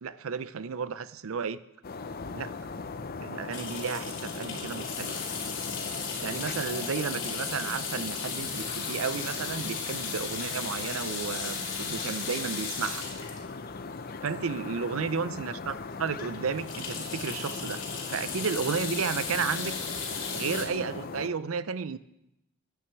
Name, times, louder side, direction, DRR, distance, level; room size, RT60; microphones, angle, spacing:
voice 1, 0.0-1.6 2.3-2.5 3.2-5.2 6.2-13.0 14.2-17.8 18.1-19.8 20.3-22.0, right 6 dB, 70° right, 16 dB, 0.5 m, -33 dB
sound 1, 1.8-21.3, left 4 dB, 45° left, 0.6 m, -39 dB
sound 2, 3.5-14.8 15.3-15.4 15.6-15.8 16.1-20.6, left 5 dB, 60° left, 3.0 m, -36 dB
15.0 x 9.4 x 4.6 m, 0.86 s
head